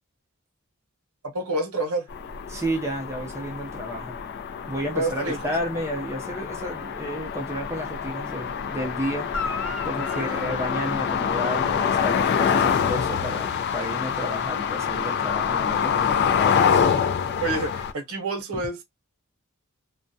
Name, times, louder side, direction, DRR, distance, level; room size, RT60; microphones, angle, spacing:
voice 1, 1.3-2.1 4.9-5.5 9.8-9.9 10.2-10.4 17.4-18.8, right 2 dB, 80° right, 0.7 m, -28 dB
sound 1, 2.1-17.9, left 7 dB, 50° left, 0.4 m, -26 dB
voice 2, 2.5-4.2 4.7-9.3 9.9-16.6, equal, 15° right, 0.5 m, -32 dB
Guitar, 9.3-11.8 15.7-15.8, left 3 dB, 90° left, 0.9 m, -35 dB
2.2 x 2.1 x 2.6 m
head